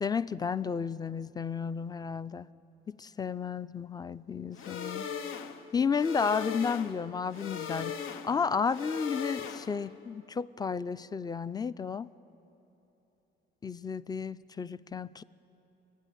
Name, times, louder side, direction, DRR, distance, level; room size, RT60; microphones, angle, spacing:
voice 1, 0.0-2.5 2.9-5.1 5.7-8.0 8.2-12.1 13.6-15.2, left 6 dB, 20° left, 17 dB, 0.4 m, -32 dB
sound 1, 4.5-9.9, left 7 dB, 85° left, 0.8 m, -39 dB
25.5 x 10.0 x 10.0 m, 3.0 s
cardioid pair, 90°, 20 cm